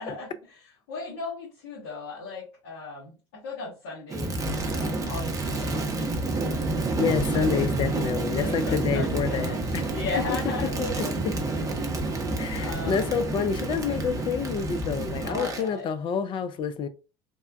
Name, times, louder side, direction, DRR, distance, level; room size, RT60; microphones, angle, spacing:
voice 1, 0.0-6.7 7.3-7.4 8.4-11.9 12.5-13.3 15.3-15.9, left 3 dB, 60° left, 1.4 m, -37 dB
Crackle, 4.1-15.7, right 2 dB, 25° right, 0.7 m, -29 dB
voice 2, 6.9-9.9 11.2-11.3 12.4-16.9, left 6 dB, 35° left, 0.4 m, -28 dB
3.4 x 2.1 x 2.5 m
figure-of-eight pair, 65°, 14 cm